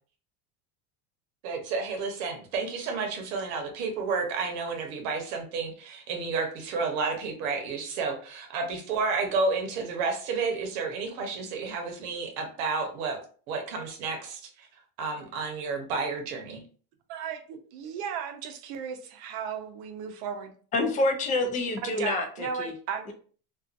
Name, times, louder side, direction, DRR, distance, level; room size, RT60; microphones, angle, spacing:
voice 1, 1.4-13.2 13.5-14.7 15.0-16.6, right 4 dB, 90° right, 3 dB, 1.0 m, -31 dB
voice 2, 17.1-20.5 21.8-23.1, right 7 dB, 70° right, 6 dB, 0.7 m, -35 dB
voice 3, 20.7-22.7, left 2 dB, 20° left, 4 dB, 0.4 m, -27 dB
2.6 x 2.4 x 2.5 m, 0.42 s
supercardioid pair, 135°, 42 cm